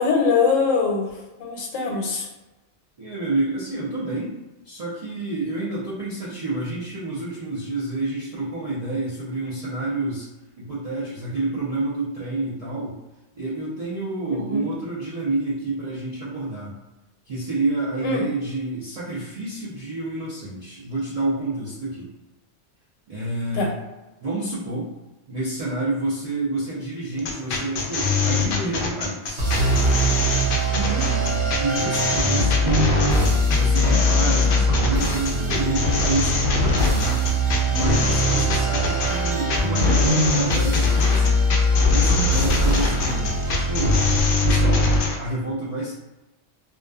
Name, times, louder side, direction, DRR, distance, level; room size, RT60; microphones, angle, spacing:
voice 1, 0.0-2.3 14.3-14.7 18.0-18.3 23.5-23.7 30.7-31.0, left 4 dB, 85° left, 0 dB, 1.0 m, -23 dB
voice 2, 3.0-4.4 4.6-10.3 10.6-13.0 13.3-16.8 17.3-22.1 23.1-23.7 24.2-24.9 25.3-30.4 30.9-32.9 33.5-41.4 41.9-44.0 44.3-45.9, right 2 dB, 50° right, -9 dB, 0.4 m, -29 dB
sound 1, 27.2-45.2, left 3 dB, 60° left, 0.6 m, -23 dB
sound 2, 29.4-44.2, equal, 70° right, 0.9 m, -22 dB
2.5 x 2.3 x 2.3 m, 1.1 s
omnidirectional pair, 1.3 m